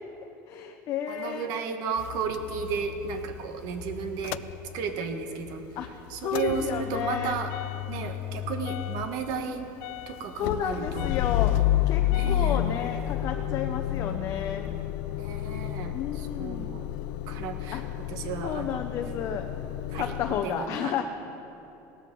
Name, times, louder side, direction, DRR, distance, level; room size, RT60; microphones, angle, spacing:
voice 1, 0.5-1.5 5.8-7.4 10.4-11.5 11.9-14.7 15.9-16.7 17.7-17.8 18.4-19.5 20.0-21.0, left 8 dB, 45° left, 5 dB, 0.7 m, -32 dB
voice 2, 1.1-4.4 4.7-5.6 6.1-7.5 7.9-9.7 10.1-11.1 12.1-12.6 15.2-16.9 17.3-17.8 18.1-18.8 19.9-20.9, right 6 dB, 60° right, 6 dB, 1.4 m, -34 dB
Motor vehicle (road) / Engine starting / Idling, 2.0-5.1 5.5-20.4, left 12 dB, 75° left, 0.4 m, -31 dB
17.5 x 13.5 x 3.9 m, 2.9 s
cardioid pair, 160°, 7 cm